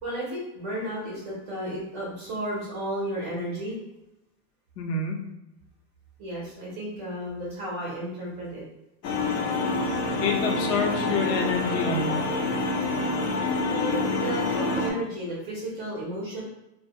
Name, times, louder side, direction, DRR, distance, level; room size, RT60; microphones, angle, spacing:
voice 1, 0.0-3.8 6.2-8.6 13.7-16.4, right 1 dB, 25° right, -5 dB, 0.5 m, -33 dB
voice 2, 4.8-5.2 10.2-12.3, left 4 dB, 80° left, 1 dB, 0.8 m, -27 dB
sound 1, 9.0-14.9, left 3 dB, 45° left, 0.5 m, -27 dB
2.2 x 2.1 x 2.8 m, 0.94 s
supercardioid pair, 160°, 50 cm